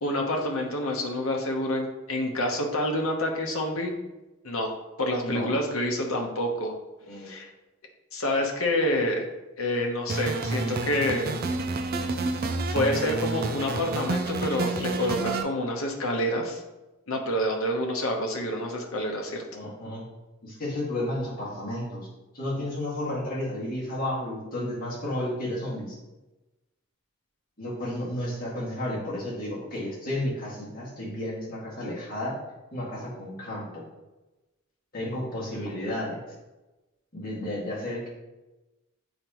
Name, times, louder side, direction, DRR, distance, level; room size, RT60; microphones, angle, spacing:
voice 1, 0.0-3.9 4.4-4.7 5.0-6.7 7.2-7.5 8.1-9.3 9.6-11.3 12.7-16.6 17.1-19.4, left 1 dB, 70° left, 1 dB, 1.1 m, -27 dB
sound 1, 10.1-15.4, right 3 dB, 40° right, 0.4 m, -29 dB
voice 2, 19.5-20.1 20.4-22.0 22.3-25.9 27.6-32.3 32.7-33.8 34.9-36.2 37.1-38.1, left 1 dB, 40° left, -7 dB, 2.2 m, -32 dB
7.4 x 4.9 x 3.0 m, 1.1 s
head